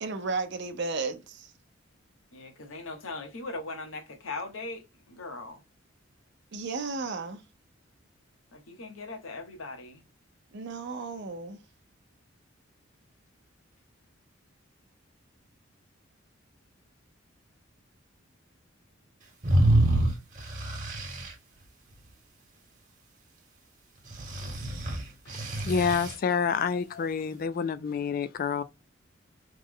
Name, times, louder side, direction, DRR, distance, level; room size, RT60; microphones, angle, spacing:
voice 1, 0.0-1.5 6.5-7.4 10.5-11.6, right 4 dB, 60° right, 0.6 m, -34 dB
voice 2, 2.3-5.6 8.5-10.0, left 3 dB, 80° left, 0.9 m, -39 dB
sound 1, 19.4-21.3 24.1-26.1, right 1 dB, 40° right, 1.0 m, -26 dB
voice 3, 25.6-28.6, left 6 dB, 45° left, 0.3 m, -28 dB
3.2 x 2.0 x 3.6 m
head